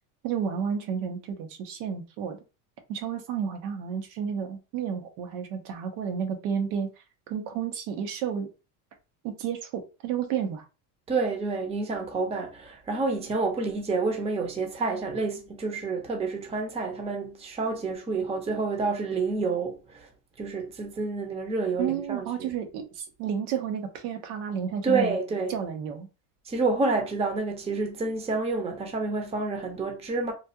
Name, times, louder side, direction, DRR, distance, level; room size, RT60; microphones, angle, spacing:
voice 1, 0.2-2.4 2.9-6.9 7.3-8.5 9.2-10.6 21.8-25.2 25.5-26.1, right 7 dB, 85° right, 1.0 m, -31 dB
voice 2, 11.1-20.1 20.4-22.5 24.8-25.5 26.5-30.3, right 3 dB, 15° right, 0.6 m, -29 dB
3.2 x 2.3 x 2.7 m
cardioid pair, 140°, 43 cm